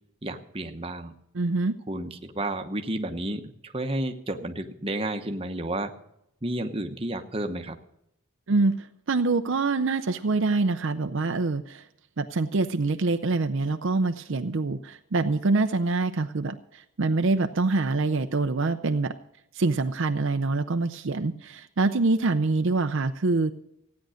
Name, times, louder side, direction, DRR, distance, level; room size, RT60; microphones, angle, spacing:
voice 1, 0.2-1.1 1.9-5.9 6.4-7.8, right 1 dB, 25° right, 6 dB, 1.0 m, -31 dB
voice 2, 1.3-1.8 8.5-11.9 12.2-19.1 19.5-23.5, right 3 dB, 60° right, 8 dB, 0.6 m, -25 dB
15.5 x 9.5 x 6.4 m, 0.79 s
head